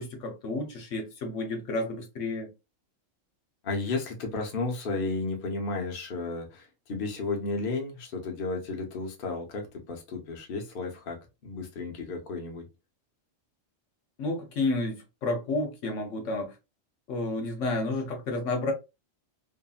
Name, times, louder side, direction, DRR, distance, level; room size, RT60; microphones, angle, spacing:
voice 1, 0.0-2.5 14.2-16.5 17.1-18.7, left 2 dB, 75° left, 1.1 m, -31 dB
voice 2, 3.6-11.2 11.4-12.7, left 3 dB, 50° left, 0.8 m, -33 dB
2.8 x 2.6 x 2.3 m
omnidirectional pair, 1.3 m